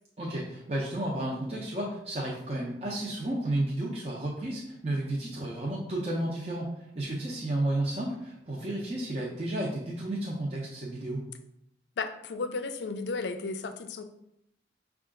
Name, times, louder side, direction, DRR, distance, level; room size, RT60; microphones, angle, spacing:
voice 1, 0.2-11.2, right 1 dB, 35° right, -4 dB, 0.6 m, -32 dB
voice 2, 12.0-14.0, left 4 dB, 75° left, 9 dB, 0.4 m, -34 dB
5.4 x 2.4 x 3.7 m, 0.77 s
head